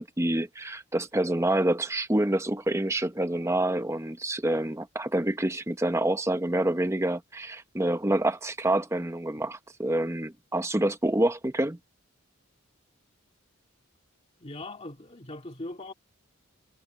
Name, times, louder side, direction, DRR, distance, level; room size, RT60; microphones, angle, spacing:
voice 1, 0.0-11.8, right 1 dB, 15° right, 0.9 m, -27 dB
voice 2, 14.4-15.9, left 2 dB, 30° left, 2.1 m, -40 dB
head